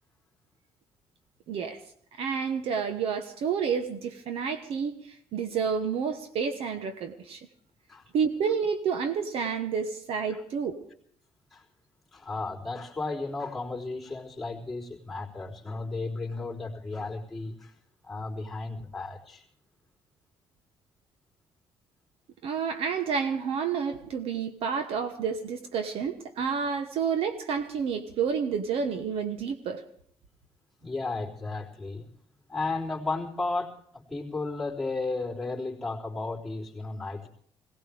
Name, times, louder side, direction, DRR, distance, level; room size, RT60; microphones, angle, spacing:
voice 1, 1.5-1.8 2.2-5.0 5.3-7.4 8.1-10.8 22.4-29.8, right 6 dB, 65° right, 7 dB, 1.2 m, -29 dB
voice 2, 12.1-17.7 18.0-19.4 30.8-32.1 32.5-37.3, left 3 dB, ahead, -9 dB, 3.5 m, -34 dB
22.0 x 18.0 x 3.5 m, 0.64 s
cardioid pair, 160°, 11 cm